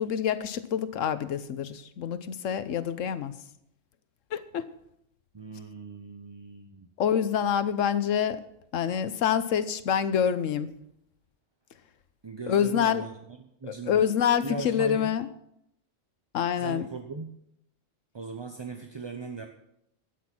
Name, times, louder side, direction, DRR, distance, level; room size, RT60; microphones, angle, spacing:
voice 1, 0.0-3.3 4.3-4.6 7.0-8.4 8.7-10.7 12.5-13.1 13.7-15.3 16.3-16.9, left 8 dB, 75° left, 14 dB, 1.1 m, -26 dB
voice 2, 5.3-6.9 12.2-13.2 13.6-14.1 14.4-15.1 16.6-17.3 18.1-19.5, right 4 dB, 30° right, 5 dB, 0.6 m, -38 dB
12.5 x 9.4 x 6.0 m, 0.78 s
omnidirectional pair, 1.3 m